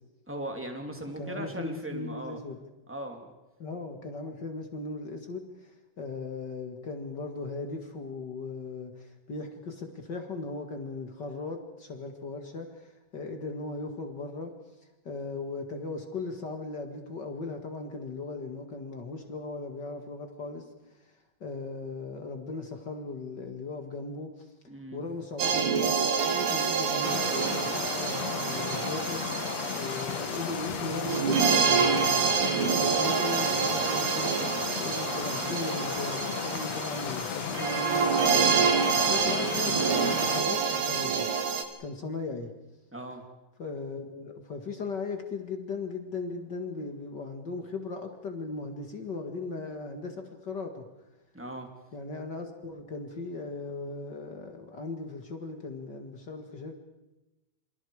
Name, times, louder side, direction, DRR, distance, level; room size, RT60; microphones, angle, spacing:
voice 1, 0.3-2.4 2.9-3.3 24.7-25.0 42.9-43.2 51.3-51.7, right 1 dB, 5° right, 3 dB, 1.5 m, -38 dB
voice 2, 1.2-2.6 3.6-14.5 15.0-21.1 21.4-24.5 24.9-41.2 41.8-42.5 43.6-50.8 51.9-56.8, left 3 dB, 50° left, 5 dB, 1.2 m, -38 dB
sound 1, 25.4-41.6, right 6 dB, 70° right, 3.7 m, -27 dB
sound 2, 27.0-40.4, left 8 dB, 75° left, 1.6 m, -35 dB
28.0 x 27.5 x 4.9 m, 1.0 s
omnidirectional pair, 4.9 m